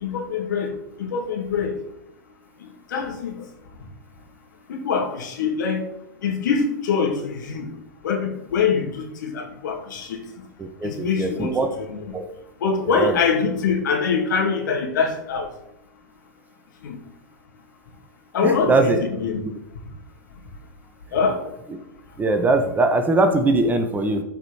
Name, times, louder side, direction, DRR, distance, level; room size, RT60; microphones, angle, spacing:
voice 1, 0.0-0.7 1.0-1.8 2.9-3.3 4.7-5.9 6.2-7.7 8.0-10.2 10.8-11.5 11.9-12.1 12.6-15.5 16.8-17.0 18.3-19.4 21.1-21.4, left 5 dB, 70° left, 3 dB, 2.7 m, -24 dB
voice 2, 10.6-11.7 12.1-12.2 12.9-13.2 18.4-19.0 22.2-24.2, right 2 dB, 15° right, 6 dB, 1.3 m, -21 dB
13.0 x 5.5 x 5.0 m, 0.84 s
hypercardioid pair, 105°, 11 cm